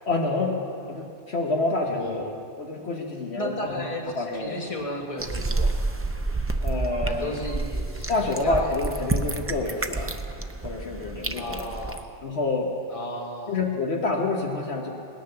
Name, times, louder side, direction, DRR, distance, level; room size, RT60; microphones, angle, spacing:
voice 1, 0.1-0.6 0.9-3.5 4.2-4.5 6.6-7.3 8.1-10.1 10.6-11.7 12.2-12.7 13.5-14.9, left 3 dB, 65° left, 1 dB, 1.4 m, -27 dB
voice 2, 1.9-2.3 3.3-5.8 7.0-8.7 11.3-12.1 12.9-13.6, left 1 dB, 30° left, 0 dB, 1.6 m, -34 dB
sound 1, 5.2-12.0, right 2 dB, 20° right, 0.4 m, -29 dB
18.5 x 10.5 x 6.7 m, 2.4 s
omnidirectional pair, 1.2 m